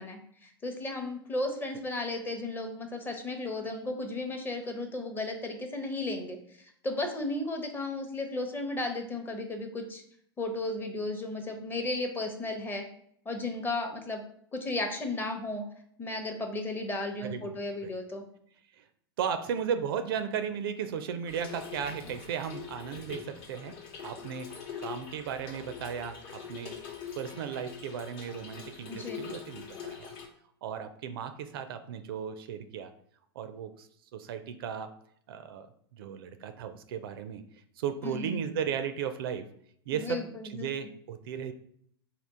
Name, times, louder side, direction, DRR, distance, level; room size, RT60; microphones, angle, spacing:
voice 1, 0.0-10.0 10.4-12.8 13.3-14.2 14.5-15.6 16.0-18.2 28.9-29.2 38.0-38.4 39.9-40.7, left 2 dB, 15° left, 4 dB, 0.7 m, -34 dB
voice 2, 17.2-17.5 17.8-17.9 19.2-23.8 24.0-26.8 27.2-30.1 30.6-32.9 33.4-33.9 34.1-34.9 35.3-35.7 35.9-37.4 37.8-39.5 39.9-40.2 40.5-41.5, right 7 dB, 60° right, 9 dB, 0.4 m, -35 dB
Trickle dribble / Fill (with liquid), 21.3-30.3, left 7 dB, 45° left, 0.8 m, -43 dB
3.6 x 2.4 x 3.5 m, 0.67 s
hypercardioid pair, 95°, 14 cm